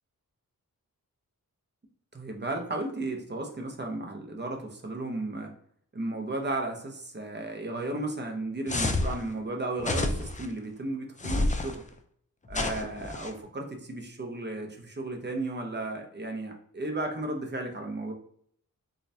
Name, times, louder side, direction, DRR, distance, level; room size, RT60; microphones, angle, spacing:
voice 1, 2.1-5.5 5.9-11.8 12.5-18.1, right 2 dB, 30° right, 2 dB, 0.9 m, -34 dB
sound 1, 8.7-9.2 9.8-10.5 11.2-11.8 12.5-13.3, left 2 dB, 20° left, 0.5 m, -29 dB
3.8 x 3.4 x 2.7 m, 0.64 s
wide cardioid pair, 80°, 35 cm